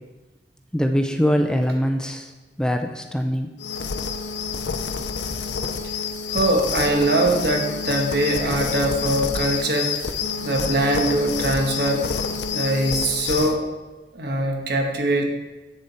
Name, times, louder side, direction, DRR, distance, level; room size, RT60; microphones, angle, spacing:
voice 1, 0.7-2.3 2.6-3.5, equal, 5° left, 5 dB, 0.4 m, -22 dB
sound 1, 3.6-13.6, left 5 dB, 90° left, 0.6 m, -28 dB
voice 2, 6.3-10.0 10.4-12.1 12.5-13.6 14.1-15.3, right 1 dB, 65° right, 2 dB, 1.3 m, -22 dB
8.0 x 6.9 x 4.2 m, 1.2 s
head